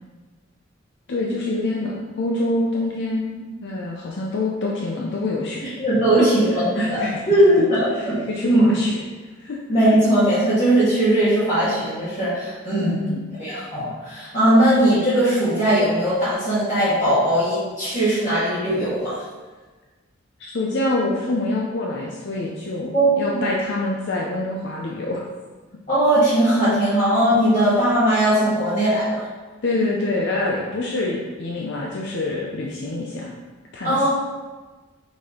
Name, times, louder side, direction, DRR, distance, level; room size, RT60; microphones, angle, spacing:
voice 1, 1.1-5.7 6.7-7.3 7.6-7.7 8.0-9.0 9.4-9.6 12.8-13.3 20.4-25.2 29.6-33.3 33.7-34.1, left 2 dB, 60° left, -2 dB, 0.6 m, -26 dB
voice 2, 5.8-8.2 8.4-8.7 9.7-13.0 13.4-19.1 22.9-23.2 25.9-29.2 33.8-34.1, right 1 dB, 40° left, -12 dB, 1.8 m, -19 dB
6.0 x 4.3 x 3.7 m, 1.3 s
head